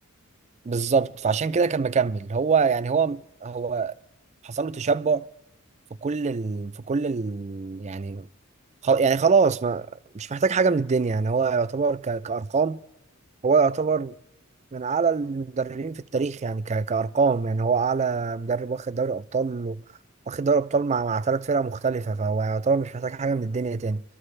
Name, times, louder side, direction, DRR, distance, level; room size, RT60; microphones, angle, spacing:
voice 1, 0.6-3.9 4.4-5.3 6.0-8.3 8.8-9.9 10.1-12.8 13.4-14.1 14.7-19.8 20.3-24.0, right 5 dB, 30° right, 0.4 m, -24 dB
24.5 x 13.0 x 3.3 m
head